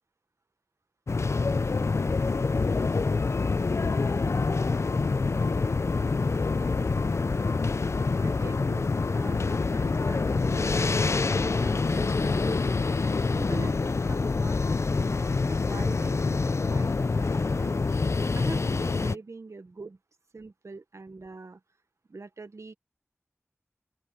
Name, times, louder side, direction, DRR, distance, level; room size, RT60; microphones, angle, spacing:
sound 1, 1.1-19.1, left 4 dB, 70° left, 0.4 m, -26 dB
sound 2, 1.5-12.7, left 2 dB, 50° left, 4.3 m, -57 dB
voice 1, 8.2-8.8 9.1-12.9 13.3-13.8 14.1-17.8 18.3-20.0 20.3-21.6 22.1-22.7, right 3 dB, 80° right, 1.2 m, -43 dB
open air
wide cardioid pair, 50°, 5 cm